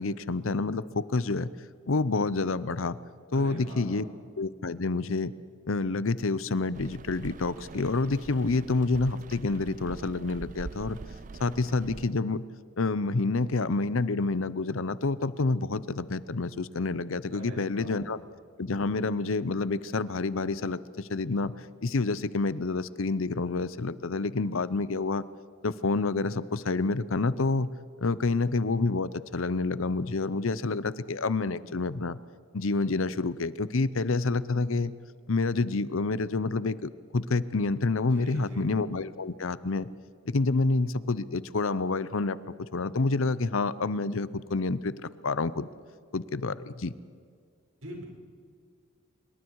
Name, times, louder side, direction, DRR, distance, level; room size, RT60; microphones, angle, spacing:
voice 1, 0.0-1.5 1.9-3.0 3.3-4.1 4.4-5.3 5.7-11.0 11.4-12.4 12.8-18.2 18.6-21.5 21.8-25.2 25.6-27.7 28.0-32.2 32.5-34.9 35.3-39.9 40.3-44.9 45.2-45.7 46.1-46.9, left 3 dB, 75° left, 17 dB, 0.7 m, -28 dB
voice 2, 3.3-4.0 17.3-18.0 38.1-38.7 47.8-48.0, right 1 dB, 75° right, 0 dB, 5.7 m, -42 dB
Rain, 6.7-12.1, right 3 dB, 35° right, 0.4 m, -44 dB
25.0 x 22.5 x 4.7 m, 2.2 s
head